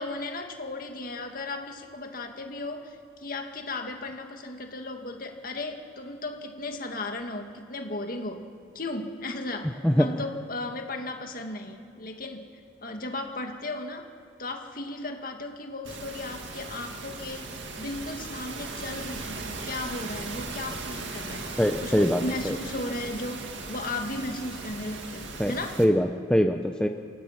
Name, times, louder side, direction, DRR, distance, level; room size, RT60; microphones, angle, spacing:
voice 1, 0.0-12.5 12.8-14.1 14.4-25.8, left 2 dB, 50° left, 4 dB, 2.0 m, -36 dB
sound 1, 15.8-25.8, right 3 dB, 80° right, 2.1 m, -38 dB
voice 2, 21.6-22.6 25.4-26.9, equal, 5° left, 5 dB, 0.6 m, -23 dB
27.5 x 16.5 x 5.9 m, 2.5 s
head